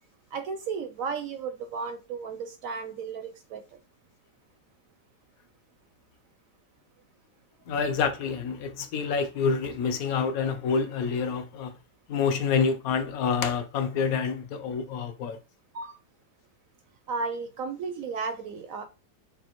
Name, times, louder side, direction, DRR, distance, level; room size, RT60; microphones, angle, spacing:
voice 1, 0.3-3.6 15.7-16.0 17.1-18.8, right 5 dB, 65° right, 0.9 m, -34 dB
voice 2, 7.7-11.7 12.1-15.4, left 5 dB, 65° left, 1.0 m, -27 dB
6.9 x 2.5 x 3.0 m
omnidirectional pair, 1.8 m